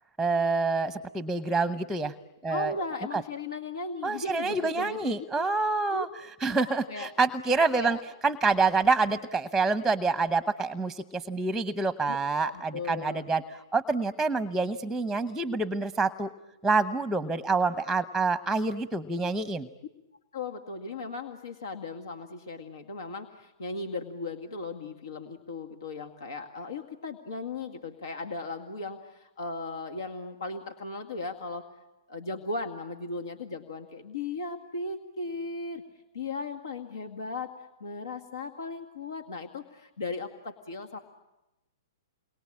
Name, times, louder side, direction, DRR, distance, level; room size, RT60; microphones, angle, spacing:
voice 1, 0.2-2.1 2.4-2.7 4.0-6.1 6.4-8.0 8.2-13.4 13.7-16.3 16.6-19.7, right 3 dB, 5° right, 11 dB, 0.9 m, -27 dB
voice 2, 2.5-5.5 5.9-6.1 6.5-7.1 7.7-8.0 12.1-13.2 20.3-31.7 32.1-35.8 36.1-37.5 37.8-41.0, left 3 dB, 85° left, 6 dB, 2.0 m, -37 dB
29.0 x 23.0 x 8.7 m, 1.0 s
hypercardioid pair, 130°, 2 cm